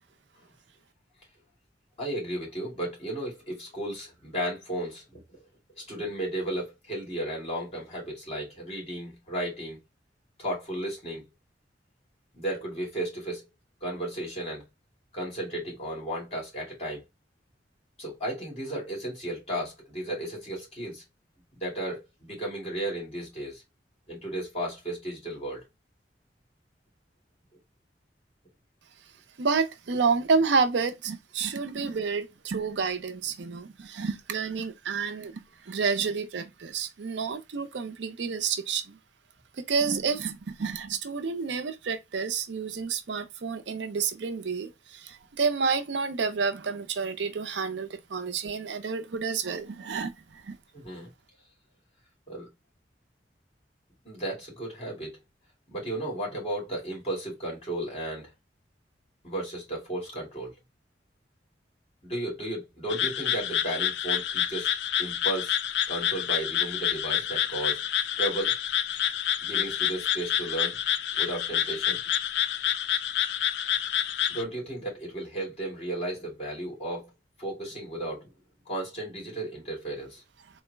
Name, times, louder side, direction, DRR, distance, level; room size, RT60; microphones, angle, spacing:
voice 1, 2.0-5.4 5.8-9.8 10.4-11.2 12.3-13.4 13.8-14.7 15.1-17.0 18.0-21.0 21.6-23.6 24.1-25.6 50.7-51.1 52.3-52.5 54.0-55.2 55.7-58.3 59.2-60.6 62.0-64.7 65.0-65.6 65.9-67.8 68.2-68.6 69.4-70.8 71.2-72.0 74.3-77.1 77.4-78.3 78.7-80.2, right 1 dB, 35° left, 2.2 m, -34 dB
voice 2, 29.4-39.0 39.6-50.6, right 5 dB, 85° right, 0.5 m, -29 dB
sound 1, 62.9-74.4, left 10 dB, 70° left, 0.3 m, -28 dB
3.8 x 2.1 x 3.3 m
head